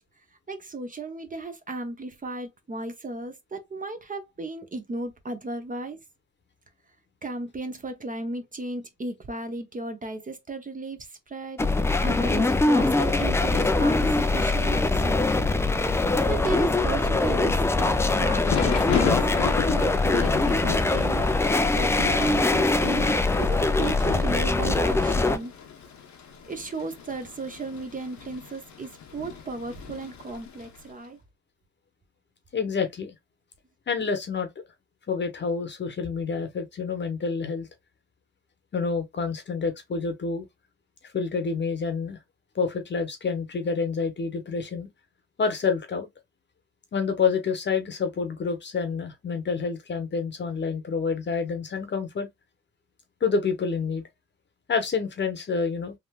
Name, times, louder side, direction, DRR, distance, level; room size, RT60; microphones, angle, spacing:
voice 1, 0.5-6.0 7.2-11.6 12.0-15.3 16.3-19.2 19.7-21.3 21.7-25.5 26.5-31.2, right 2 dB, 25° right, 0.7 m, -35 dB
sound 1, 11.6-25.4, left 2 dB, 10° left, 0.3 m, -23 dB
Thunder / Rain, 17.9-30.8, left 7 dB, 70° left, 0.9 m, -34 dB
voice 2, 32.5-33.1 33.9-34.5 35.1-37.7 38.7-40.5 41.1-42.2 42.5-44.9 45.4-46.1 46.9-52.3 53.2-54.0 54.7-55.9, left 5 dB, 35° left, 0.9 m, -28 dB
3.4 x 2.5 x 2.2 m
cardioid pair, 90°, 30 cm